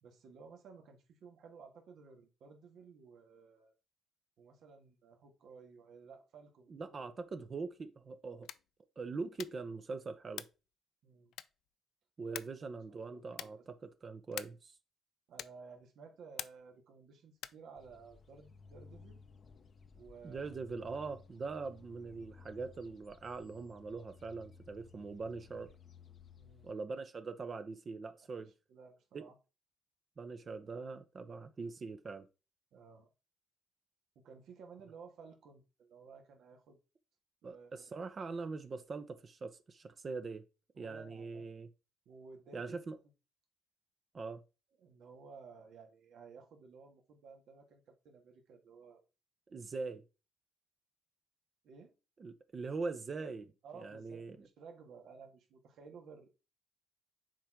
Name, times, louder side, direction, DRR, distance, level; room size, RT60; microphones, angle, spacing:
voice 1, 0.0-3.7 4.4-7.0 11.0-11.3 12.3-12.4 13.1-13.5 15.3-19.2 19.9-20.6 26.4-26.7 28.2-28.3 28.7-29.4 32.7-33.1 34.2-36.8 37.4-37.9 40.7-41.4 42.1-42.8 44.8-49.0 51.6-51.9 53.6-56.3, right 5 dB, 70° right, 1.9 m, -55 dB
voice 2, 6.7-8.5 9.0-10.5 12.2-14.8 20.2-25.7 26.6-28.5 29.1-29.3 30.2-32.3 37.4-40.5 40.8-41.7 42.5-43.0 44.1-44.4 49.5-50.0 52.2-54.5, right 4 dB, 35° right, 0.9 m, -42 dB
sound 1, 8.4-8.8 9.3-9.7 10.3-10.7 11.3-11.7 12.3-12.7 13.3-13.7 14.3-14.7 15.3-15.7 16.4-16.8 17.3-17.7, left 12 dB, 80° left, 0.4 m, -46 dB
sound 2, 17.7-26.7, left 5 dB, 40° left, 0.7 m, -58 dB
7.5 x 4.5 x 3.8 m
cardioid pair, 100°, 0 cm